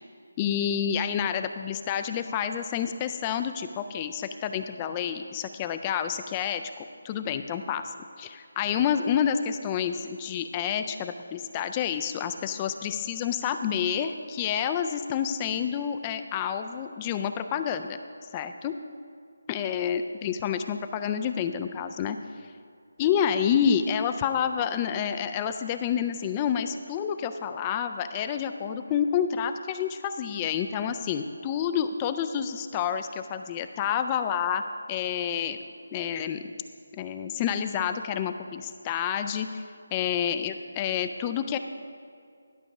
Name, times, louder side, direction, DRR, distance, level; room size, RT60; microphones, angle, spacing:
voice 1, 0.4-6.6 7.0-7.8 8.2-18.0 18.3-18.7 19.5-22.2 23.0-34.6 34.9-35.6 35.9-36.4 36.9-39.6 39.9-41.6, left 8 dB, 20° left, 9 dB, 0.3 m, -28 dB
11.5 x 5.3 x 5.9 m, 2.3 s
figure-of-eight pair, 160°, 0 cm